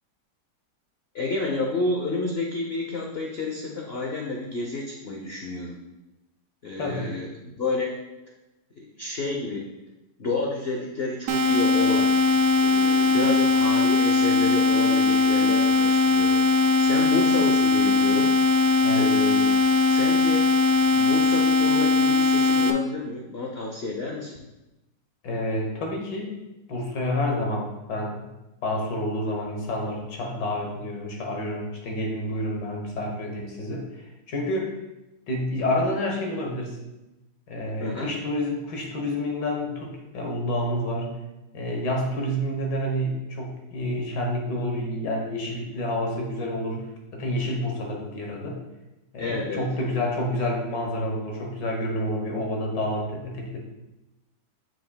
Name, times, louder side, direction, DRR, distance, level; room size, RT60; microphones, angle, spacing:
voice 1, 1.1-5.8 6.6-8.0 8.8-9.7 10.2-12.2 12.6-16.4 16.8-18.3 19.0-19.6 19.9-20.5 20.9-24.3 37.8-38.1 49.2-49.6, left 3 dB, 55° left, -1 dB, 0.7 m, -30 dB
voice 2, 6.8-7.1 18.8-19.1 25.2-26.3 26.7-28.2 28.6-34.7 35.3-36.8 37.5-41.2 41.5-46.9 47.1-48.6 49.1-53.6, left 1 dB, 90° left, 1 dB, 1.8 m, -29 dB
sound 1, 11.3-22.7, left 3 dB, 85° right, 0.6 m, -20 dB
7.6 x 6.1 x 2.3 m, 1.0 s
omnidirectional pair, 1.8 m